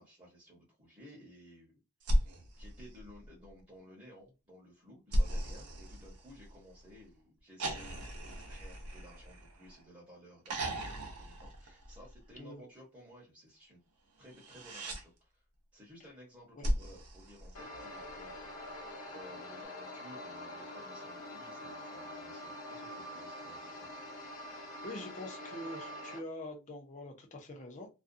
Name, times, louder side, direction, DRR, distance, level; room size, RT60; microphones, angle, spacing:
voice 1, 0.0-1.8 2.1-13.8 14.2-15.4 15.7-18.8 19.1-23.9, equal, 20° right, 0.9 m, -56 dB
sound 1, 2.0-3.6 5.1-6.8 7.6-9.9 10.4-12.3 14.2-15.0 16.6-18.1 19.6-19.7, equal, 90° right, 0.7 m, -36 dB
sound 2, 17.5-26.2, left 1 dB, 60° left, 0.8 m, -45 dB
voice 2, 24.8-27.9, left 1 dB, 35° left, 0.6 m, -44 dB
2.4 x 2.2 x 2.5 m
head